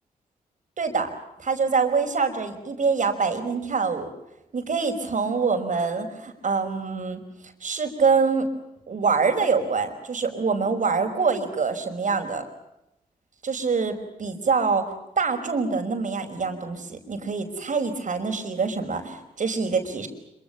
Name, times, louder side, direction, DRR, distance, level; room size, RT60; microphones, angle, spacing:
voice 1, 0.8-1.1 1.4-4.1 4.5-7.2 7.6-8.5 8.9-12.4 13.4-14.8 15.2-20.1, right 5 dB, 60° right, 6 dB, 5.5 m, -25 dB
26.0 x 25.0 x 7.1 m, 0.87 s
cardioid pair, 60°, 15 cm